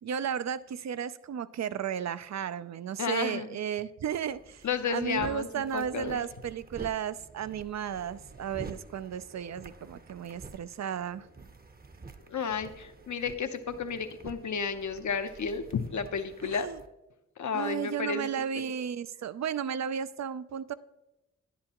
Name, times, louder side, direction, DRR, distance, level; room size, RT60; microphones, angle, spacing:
voice 1, 0.0-11.3 16.4-16.8 17.5-20.7, right 8 dB, 60° right, 15 dB, 0.5 m, -34 dB
voice 2, 3.0-3.6 4.6-6.2 12.3-16.7 17.4-18.3 18.5-18.6, left 6 dB, 70° left, 8 dB, 0.8 m, -32 dB
sound 1, 4.3-16.9, right 3 dB, 30° right, 0.8 m, -49 dB
10.5 x 10.0 x 3.0 m, 0.94 s
cardioid pair, 45°, 31 cm